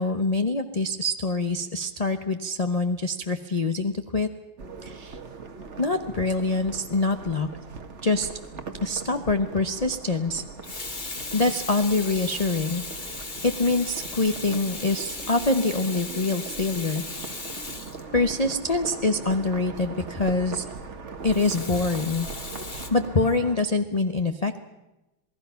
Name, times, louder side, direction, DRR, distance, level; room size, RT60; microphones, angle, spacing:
voice 1, 0.0-4.3 4.8-5.2 5.8-7.5 8.0-8.3 8.8-10.4 11.3-12.8 13.4-17.0 18.1-20.7 21.2-22.3 22.7-24.6, left 2 dB, 40° left, 7 dB, 0.5 m, -25 dB
sound 1, 4.6-23.6, right 4 dB, 40° right, 1.5 m, -40 dB
Water tap faucet / Sink (filling or washing), 8.9-9.1 10.4-18.6 21.3-22.9, left 3 dB, 25° left, 1.5 m, -37 dB
27.5 x 19.0 x 5.7 m, 1.0 s
omnidirectional pair, 2.1 m